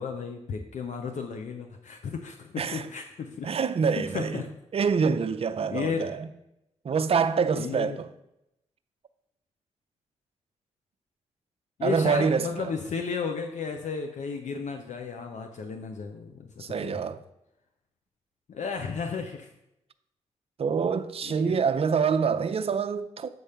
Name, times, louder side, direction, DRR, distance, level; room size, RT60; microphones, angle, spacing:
voice 1, 0.0-3.5 4.0-4.5 5.7-6.1 7.5-8.0 11.8-17.0 18.5-19.5 21.2-21.5, left 5 dB, 70° left, 0.7 m, -34 dB
voice 2, 3.4-4.4 4.7-6.3 6.8-8.1 11.8-12.5 16.6-17.2 20.6-23.3, right 6 dB, 50° right, 0.5 m, -26 dB
7.8 x 3.6 x 5.6 m
cardioid pair, 55°, 13 cm